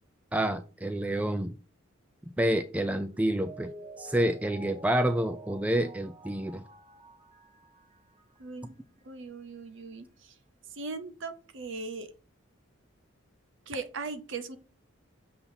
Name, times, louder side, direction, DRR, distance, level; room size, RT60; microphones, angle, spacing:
voice 1, 0.3-1.6 2.4-3.7 4.0-6.6, right 1 dB, 5° right, 8 dB, 0.3 m, -28 dB
Mallet percussion, 3.1-8.6 9.0-9.1, right 1 dB, 30° right, 0.8 m, -49 dB
voice 2, 8.4-8.8 9.0-10.3 10.7-12.1 13.7-14.6, right 3 dB, 60° right, 10 dB, 0.6 m, -39 dB
6.9 x 2.7 x 5.7 m, 0.35 s
head